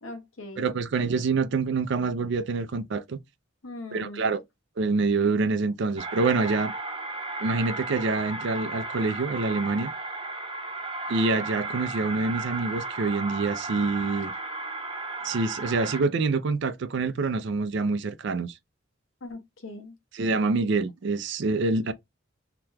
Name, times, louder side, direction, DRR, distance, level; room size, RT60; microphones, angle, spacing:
voice 1, 0.0-0.8 3.6-4.3 19.2-20.0, left 2 dB, 80° left, 1.0 m, -40 dB
voice 2, 0.6-3.2 3.9-4.4 4.8-6.7 7.4-9.9 11.1-14.3 15.2-18.6 20.1-21.9, right 3 dB, 60° right, 0.4 m, -26 dB
sound 1, 6.0-16.0, right 3 dB, 25° right, 0.8 m, -34 dB
2.9 x 2.2 x 3.3 m
head